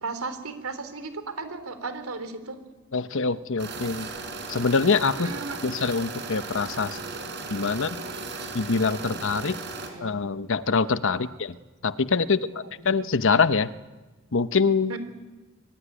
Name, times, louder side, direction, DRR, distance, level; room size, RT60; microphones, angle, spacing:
voice 1, 0.0-2.6 5.1-5.6 7.0-7.4 7.7-8.5 9.0-9.6 9.9-10.2 11.1-11.4 12.3-12.7 14.9-15.0, right 3 dB, 80° right, 10 dB, 3.4 m, -37 dB
voice 2, 2.9-4.1 4.5-5.3 5.6-7.0 7.5-8.0 8.5-9.5 10.0-11.6 11.8-12.5 12.8-13.7 14.3-14.9, left 4 dB, 60° left, 13 dB, 0.9 m, -24 dB
sound 1, 3.6-9.9, right 3 dB, 55° right, 4.7 m, -36 dB
25.5 x 22.5 x 10.0 m, 1.2 s
head